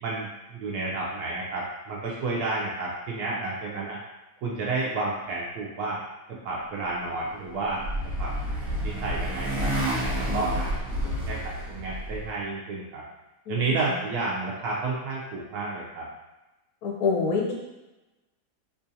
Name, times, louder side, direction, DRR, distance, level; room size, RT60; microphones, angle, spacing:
voice 1, 0.0-4.0 4.4-6.0 6.4-7.8 8.2-8.3 8.8-9.7 10.2-10.7 11.0-13.0 13.5-16.1, right 3 dB, 70° right, -4 dB, 0.9 m, -31 dB
Motorcycle, 7.3-12.3, right 1 dB, 25° right, 1.1 m, -29 dB
voice 2, 16.8-17.5, left 5 dB, 75° left, -2 dB, 1.2 m, -27 dB
3.7 x 2.4 x 2.6 m, 1.0 s
omnidirectional pair, 2.0 m